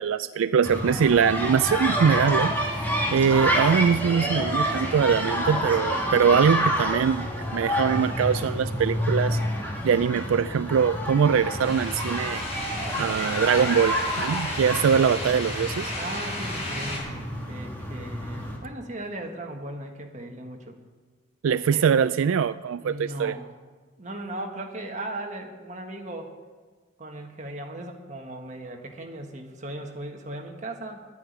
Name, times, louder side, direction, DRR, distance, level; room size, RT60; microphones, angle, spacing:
voice 1, 0.0-2.6 3.1-7.3 7.5-9.4 9.8-12.4 13.0-15.9 21.4-23.4, right 7 dB, 80° right, 14 dB, 0.3 m, -22 dB
sound 1, 0.6-18.6, equal, 10° left, 2.1 m, -28 dB
sound 2, 11.6-17.0, left 1 dB, 30° left, 5.0 m, -34 dB
voice 2, 16.0-20.8 21.5-22.0 22.8-23.5 24.0-26.3 27.0-31.1, right 1 dB, 35° right, 2 dB, 1.5 m, -37 dB
11.5 x 9.3 x 9.3 m, 1.5 s
head